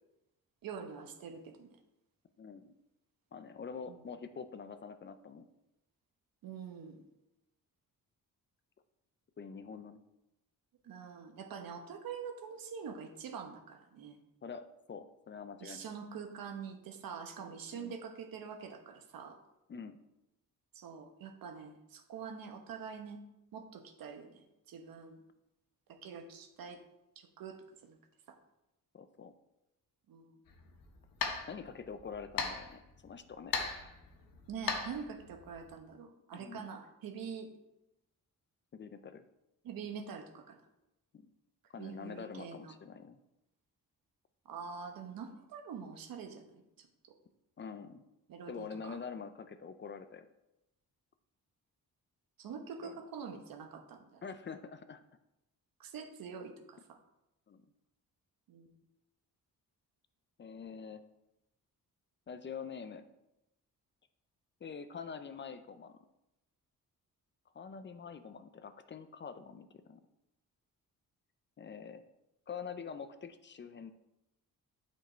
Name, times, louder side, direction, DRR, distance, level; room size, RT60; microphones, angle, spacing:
voice 1, 0.6-1.7 3.9-4.0 6.4-7.0 10.8-14.2 15.6-19.4 20.7-23.2 23.5-25.2 26.0-26.8 27.2-28.0 28.3-28.4 30.1-30.4 34.5-37.5 39.6-40.6 41.7-42.8 44.4-47.1 48.3-49.0 52.4-54.2 55.8-57.0 58.5-58.8, right 6 dB, 85° right, 5 dB, 1.2 m, -45 dB
voice 2, 2.4-2.7 3.3-5.5 9.4-10.0 14.4-15.9 17.7-17.9 19.7-20.0 28.9-29.3 31.5-33.9 36.3-36.7 38.7-39.2 41.1-41.3 41.7-43.2 47.6-48.0 48.5-50.3 52.8-53.0 54.2-55.0 57.5-57.7 60.4-61.0 62.3-63.0 64.6-66.0 67.5-70.0 71.6-72.0 72.5-73.9, left 6 dB, 35° left, 10 dB, 0.5 m, -45 dB
sound 1, 30.5-35.7, left 5 dB, 80° left, 1.2 m, -40 dB
9.1 x 5.3 x 4.4 m, 0.92 s
wide cardioid pair, 140°, 34 cm